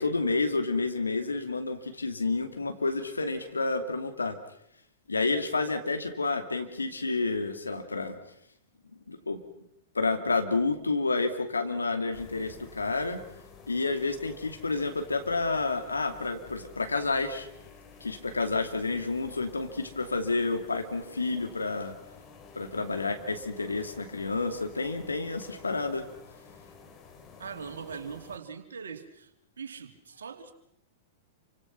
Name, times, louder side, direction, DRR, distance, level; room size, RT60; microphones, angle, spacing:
voice 1, 0.0-4.4 5.1-8.2 9.1-9.4 9.9-13.2 13.7-17.5 18.0-21.9 22.5-26.1, left 3 dB, 80° left, 7 dB, 2.7 m, -30 dB
sound 1, 12.1-28.4, left 6 dB, 30° left, 3.7 m, -51 dB
voice 2, 27.4-29.3 29.6-30.5, right 6 dB, 70° right, 6 dB, 3.0 m, -41 dB
28.5 x 25.5 x 6.0 m, 0.74 s
figure-of-eight pair, 100°, 0 cm